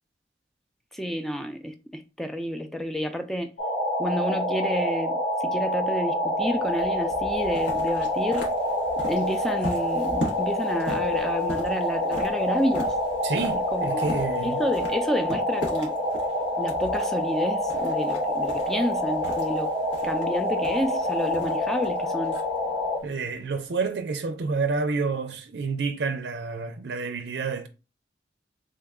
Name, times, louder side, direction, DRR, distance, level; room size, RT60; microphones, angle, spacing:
voice 1, 0.9-3.5 4.0-8.5 9.1-12.9 13.7-14.0 14.4-16.0 16.6-19.7 20.0-22.4, equal, ahead, 0.3 m, -30 dB
sound 1, 3.6-23.0, left 1 dB, 65° left, 1.5 m, -27 dB
sound 2, 6.3-24.0, equal, 90° left, 1.1 m, -40 dB
voice 2, 13.2-14.6 23.0-27.7, right 4 dB, 70° right, 0.5 m, -29 dB
3.7 x 2.2 x 3.6 m
head